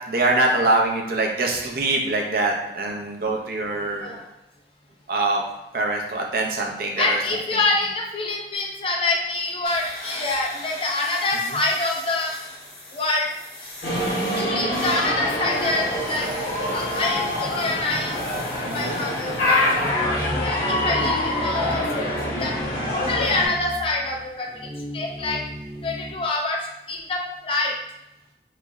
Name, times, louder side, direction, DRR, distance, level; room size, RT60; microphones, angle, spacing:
voice 1, 0.1-4.1 5.1-5.4 5.7-7.2 18.7-19.0, right 2 dB, 55° right, 0 dB, 0.5 m, -23 dB
voice 2, 4.0-4.3 7.0-12.3 12.9-13.3 14.4-16.3 16.7-22.1 22.4-22.5 22.9-25.4 25.8-27.7, left 2 dB, 30° left, 0 dB, 0.5 m, -26 dB
sound 1, 9.6-19.9, left 1 dB, 55° left, 1.0 m, -40 dB
sound 2, 13.8-23.5, left 1 dB, 70° left, 1.3 m, -25 dB
sound 3, 19.8-26.1, equal, ahead, 0.7 m, -34 dB
3.2 x 2.0 x 3.4 m, 0.89 s
head